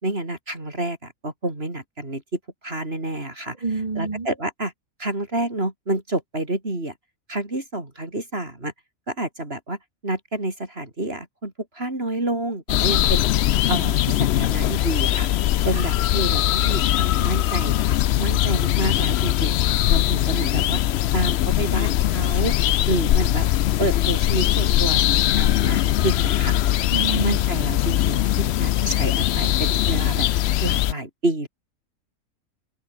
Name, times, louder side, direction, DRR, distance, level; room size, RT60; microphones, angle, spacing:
voice 1, 0.0-2.2 2.6-3.6 4.0-4.7 5.0-6.9 7.3-8.7 9.1-13.3 13.7-15.3 15.6-17.7 18.2-19.6 19.9-20.8 21.1-22.6 22.9-23.5 23.8-26.8 27.1-30.3 30.6-31.5, right 1 dB, 45° right, 5.1 m, -29 dB
voice 2, 3.6-4.3 15.7-15.9 26.9-27.4, right 3 dB, 30° right, 1.2 m, -27 dB
sound 1, 12.7-30.9, left 13 dB, 65° left, 0.7 m, -21 dB
omnidirectional pair, 1.4 m